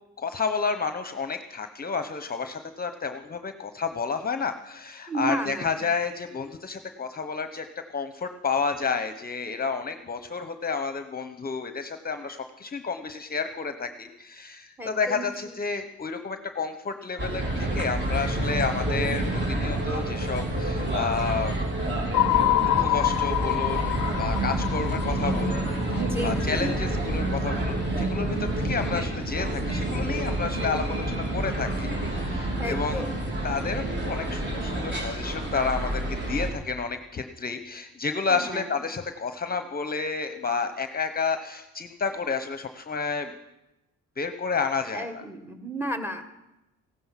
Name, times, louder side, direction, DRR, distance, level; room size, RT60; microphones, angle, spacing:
voice 1, 0.2-21.5 22.6-33.2 33.4-43.3 44.2-45.2, left 5 dB, 30° left, 8 dB, 0.9 m, -31 dB
voice 2, 5.1-5.7 14.8-15.2 26.0-26.7 32.6-33.1 38.3-38.7 44.9-46.3, right 1 dB, 5° right, 7 dB, 1.7 m, -33 dB
sound 1, 17.2-36.5, right 1 dB, 35° right, 3.8 m, -28 dB
sound 2, 22.1-26.4, left 15 dB, 75° left, 0.5 m, -26 dB
16.0 x 12.0 x 5.8 m, 0.97 s
cardioid pair, 90°, 30 cm